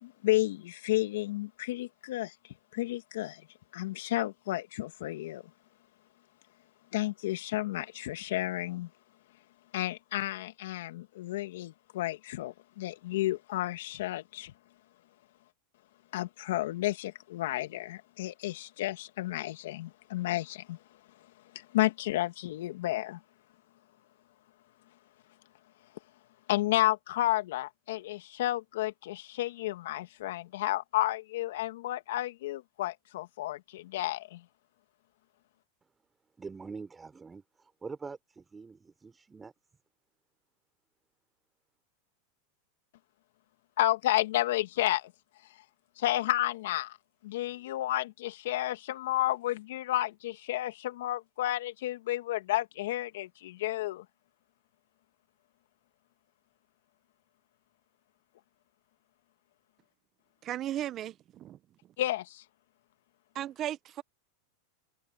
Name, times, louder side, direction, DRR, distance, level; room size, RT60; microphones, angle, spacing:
voice 1, 0.0-3.5 3.7-5.4 6.9-8.9 9.7-14.5 16.1-20.8 21.5-23.2 26.5-34.4 43.8-45.1 46.0-47.0 47.2-54.1 62.0-62.4, left 15 dB, 75° left, 2.1 m, -32 dB
voice 2, 36.4-39.5, right 4 dB, 15° right, 4.5 m, -44 dB
voice 3, 60.4-61.6 63.3-64.0, right 12 dB, 40° right, 0.9 m, -36 dB
hypercardioid pair, 105°, 0 cm